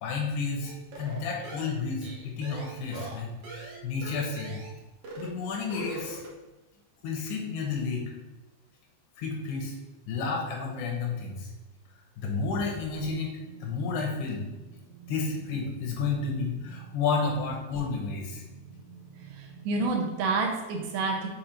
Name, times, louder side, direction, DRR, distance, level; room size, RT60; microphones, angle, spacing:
voice 1, 0.0-4.6 5.2-6.2 7.0-8.0 9.2-9.7 10.1-11.5 12.2-14.4 15.1-18.4, left 4 dB, 90° left, 0 dB, 3.2 m, -31 dB
sound 1, 0.6-4.8 5.0-5.3 5.6-6.4, right 3 dB, 85° right, 1.2 m, -41 dB
sound 2, 13.1-19.9, right 5 dB, 40° right, 1.2 m, -49 dB
voice 2, 19.3-21.3, right 3 dB, 70° right, 1 dB, 2.1 m, -29 dB
6.6 x 5.2 x 2.9 m, 1.1 s
omnidirectional pair, 4.6 m